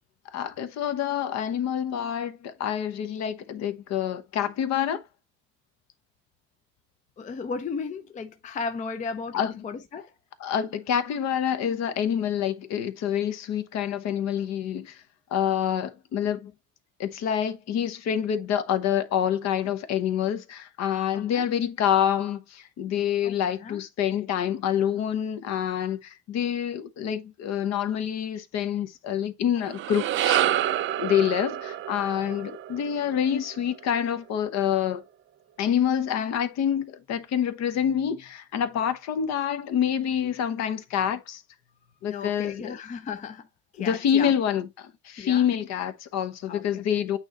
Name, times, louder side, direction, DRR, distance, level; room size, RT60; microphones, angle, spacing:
voice 1, 0.3-5.0 9.3-9.6 10.4-15.0 15.3-16.5 17.0-30.4 31.0-35.0 35.6-41.4 42.0-42.8 43.8-47.2, left 9 dB, 55° left, 1.0 m, -27 dB
voice 2, 7.2-10.1 21.1-21.5 23.2-23.8 42.1-43.5 43.7-44.3 45.2-45.5 46.5-46.8, left 5 dB, 25° left, 0.5 m, -35 dB
sound 1, 29.6-34.0, right 12 dB, 40° right, 0.4 m, -28 dB
8.9 x 3.0 x 3.8 m
cardioid pair, 155°, 33 cm